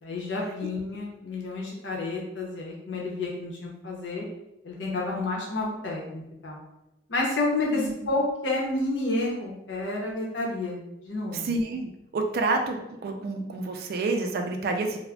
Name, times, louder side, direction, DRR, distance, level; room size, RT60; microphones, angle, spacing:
voice 1, 0.0-4.2 4.6-6.6 7.1-10.8 11.0-11.5, left 2 dB, 80° left, -2 dB, 0.8 m, -30 dB
voice 2, 11.3-15.0, right 3 dB, 55° right, 4 dB, 0.4 m, -29 dB
2.4 x 2.1 x 3.4 m, 0.88 s
head